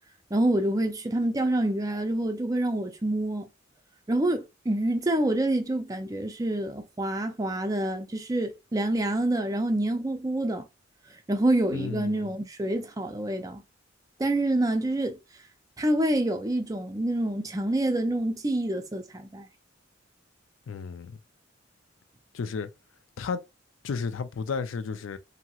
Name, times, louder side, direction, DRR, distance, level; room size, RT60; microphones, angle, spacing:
voice 1, 0.3-3.5 4.1-10.6 11.3-13.6 14.2-15.2 15.8-19.5, right 1 dB, 20° right, 0.4 m, -27 dB
voice 2, 11.7-12.3 20.7-21.2 22.3-22.7 23.2-23.5 23.8-25.2, left 5 dB, 80° left, 0.4 m, -33 dB
2.8 x 2.8 x 2.3 m
head